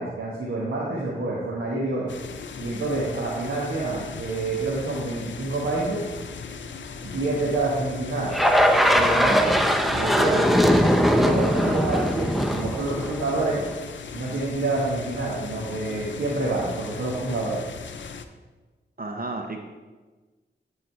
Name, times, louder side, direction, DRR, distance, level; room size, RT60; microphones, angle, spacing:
voice 1, 0.0-2.1 2.6-6.1 7.0-8.3 8.9-10.5 11.1-13.6 14.1-17.6, right 2 dB, 85° right, -6 dB, 1.4 m, -27 dB
sound 1, 2.1-18.2, left 5 dB, 70° left, 0.5 m, -38 dB
sound 2, 8.3-13.7, equal, ahead, 0.7 m, -21 dB
voice 2, 11.5-11.8 19.0-19.6, right 2 dB, 45° right, 4 dB, 0.8 m, -33 dB
11.0 x 4.0 x 4.5 m, 1.3 s
cardioid pair, 45°, 20 cm